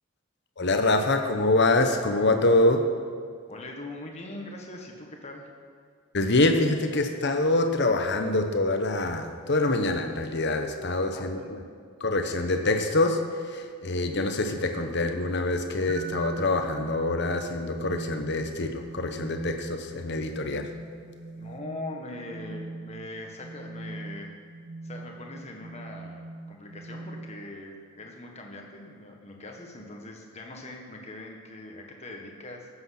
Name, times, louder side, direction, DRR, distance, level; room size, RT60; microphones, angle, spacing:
voice 1, 0.6-2.9 6.1-11.4 12.0-20.7, left 2 dB, 50° left, 6 dB, 1.0 m, -25 dB
voice 2, 3.5-5.5 11.1-11.6 21.4-24.4 24.8-32.7, left 2 dB, 30° left, 1 dB, 1.6 m, -41 dB
sound 1, 15.9-27.6, right 2 dB, 40° right, 1.1 m, -41 dB
14.5 x 8.0 x 5.9 m, 2.1 s
head